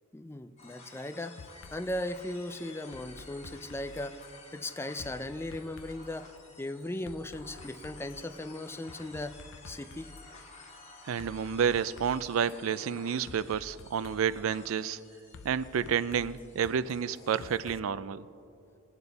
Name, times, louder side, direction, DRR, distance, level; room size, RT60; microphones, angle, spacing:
voice 1, 0.1-1.4 1.7-4.2 4.5-6.3 6.6-9.4 9.6-10.1, left 1 dB, 10° left, 9 dB, 0.4 m, -37 dB
sound 1, 0.6-17.6, left 3 dB, 35° left, 1.8 m, -53 dB
sound 2, 1.4-2.0 2.9-4.4 5.0-6.2 7.1-8.4 8.9-10.3 11.2-12.6 13.3-14.4 15.3-17.8, left 4 dB, 65° left, 0.5 m, -50 dB
voice 2, 11.1-15.0 15.4-18.2, right 7 dB, 75° right, 16 dB, 0.4 m, -30 dB
22.0 x 8.9 x 4.0 m, 2.6 s
head